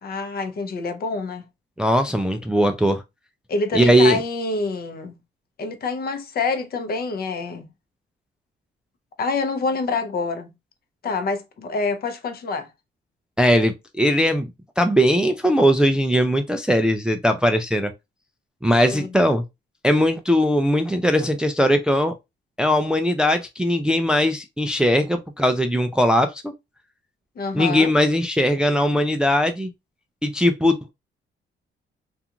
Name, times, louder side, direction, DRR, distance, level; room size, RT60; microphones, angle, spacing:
voice 1, 0.0-1.4 3.5-5.2 5.6-7.7 9.2-10.5 11.0-12.7 18.9-19.1 27.4-27.9, left 3 dB, 50° left, 0.6 m, -26 dB
voice 2, 1.8-3.0 3.7-4.2 13.4-14.5 14.8-17.9 18.6-19.4 19.8-22.2 22.6-26.5 27.5-29.7 30.2-30.9, equal, 5° right, 0.3 m, -19 dB
2.4 x 2.4 x 2.8 m
cardioid pair, 90°, 20 cm